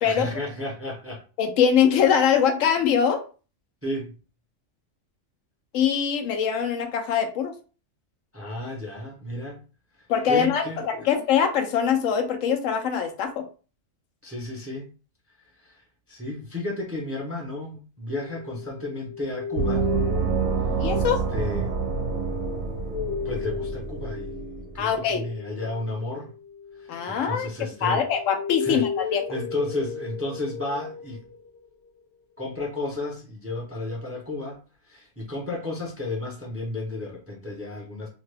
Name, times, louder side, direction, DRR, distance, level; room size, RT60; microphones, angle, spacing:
voice 1, 0.0-1.2 3.8-4.2 8.3-9.6 10.2-11.1 14.2-14.9 15.6-19.9 20.6-21.7 23.2-26.3 26.8-28.1 28.6-28.9 29.3-31.3 32.4-38.1, left 2 dB, 20° right, 0.4 m, -33 dB
voice 2, 1.4-3.2 5.7-7.5 10.1-13.5 20.8-21.2 24.8-25.2 26.9-29.2, left 7 dB, 90° left, 1.0 m, -23 dB
sound 1, 18.2-27.6 27.9-31.6, left 6 dB, 65° left, 0.9 m, -35 dB
Gong, 19.6-24.8, right 6 dB, 65° right, 0.8 m, -28 dB
2.8 x 2.2 x 3.2 m
omnidirectional pair, 1.3 m